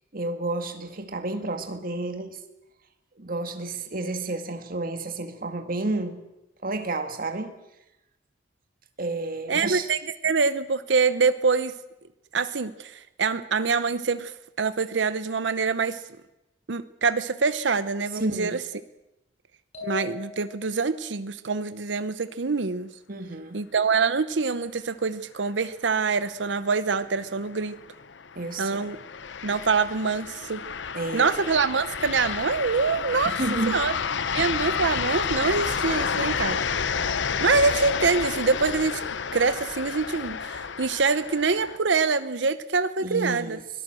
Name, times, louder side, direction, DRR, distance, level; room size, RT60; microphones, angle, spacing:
voice 1, 0.1-2.4 3.2-6.2 6.6-7.5 9.0-9.9 18.2-18.6 23.1-23.6 28.4-28.9 30.9-31.4 33.3-33.8 43.0-43.6, right 2 dB, 50° right, 7 dB, 2.0 m, -31 dB
voice 2, 9.5-11.8 12.3-16.0 16.7-18.6 19.8-22.9 23.5-27.7 28.6-29.0 29.4-30.6 31.1-33.3 33.7-33.9 34.3-36.6 37.4-39.0 39.3-43.6, right 4 dB, 80° right, 12 dB, 0.8 m, -25 dB
sound 1, 19.7-20.9, left 6 dB, 40° left, 7.1 m, -40 dB
sound 2, 26.9-41.8, left 6 dB, 80° left, 0.8 m, -30 dB
24.5 x 18.0 x 7.7 m, 0.93 s
head